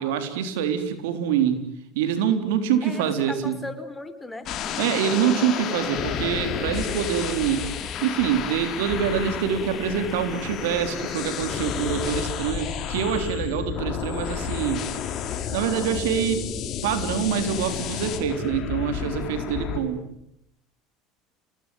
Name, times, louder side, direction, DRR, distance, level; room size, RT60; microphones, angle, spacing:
voice 1, 0.0-1.7 1.9-3.6 4.8-7.7 8.0-14.9 15.5-16.5 16.8-20.1, right 8 dB, 80° right, 9 dB, 3.7 m, -25 dB
voice 2, 2.8-4.5, left 2 dB, 10° left, 10 dB, 4.0 m, -37 dB
sound 1, 4.4-19.8, left 8 dB, 50° left, 5.1 m, -31 dB
sound 2, 4.6-12.1, left 5 dB, 25° left, 2.2 m, -40 dB
29.5 x 19.5 x 9.2 m, 0.80 s
supercardioid pair, 100°, 0 cm